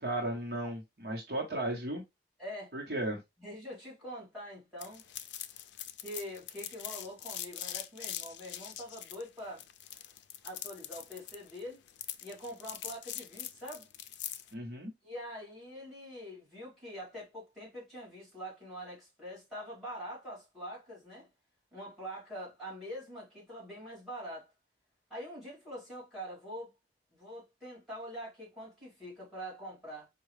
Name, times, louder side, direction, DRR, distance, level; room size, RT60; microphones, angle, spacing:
voice 1, 0.0-2.0 2.7-3.2 14.5-14.9, right 1 dB, 55° right, 1.0 m, -35 dB
voice 2, 2.4-2.7 3.4-5.0 6.0-9.6 10.4-11.8 12.2-13.9 15.0-21.3 21.7-24.5 25.1-26.7 27.1-30.1, equal, ahead, 2.6 m, -44 dB
sound 1, 4.8-14.5, left 11 dB, 80° left, 0.4 m, -43 dB
4.7 x 2.3 x 3.2 m
head